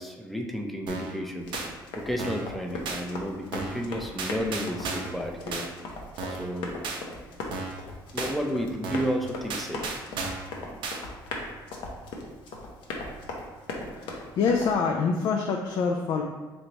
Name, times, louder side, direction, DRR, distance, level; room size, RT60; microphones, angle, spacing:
voice 1, 0.0-1.6 2.0-5.7 6.3-6.9 8.1-9.9, equal, ahead, 2 dB, 0.5 m, -32 dB
sound 1, 0.9-1.2 1.5-1.7 2.2-2.5 2.9-3.0 3.5-3.8 4.2-5.2 5.5-5.7 6.2-6.5 6.8-7.0 7.5-7.8 8.2-8.3 8.8-9.2 9.5-10.5 10.8-11.0, right 4 dB, 75° right, 0.6 m, -34 dB
Run, 1.4-14.7, left 2 dB, 85° left, 0.7 m, -39 dB
voice 2, 13.9-16.2, left 5 dB, 65° left, 2 dB, 0.4 m, -26 dB
3.4 x 3.0 x 3.9 m, 1.3 s
cardioid pair, 110°, 8 cm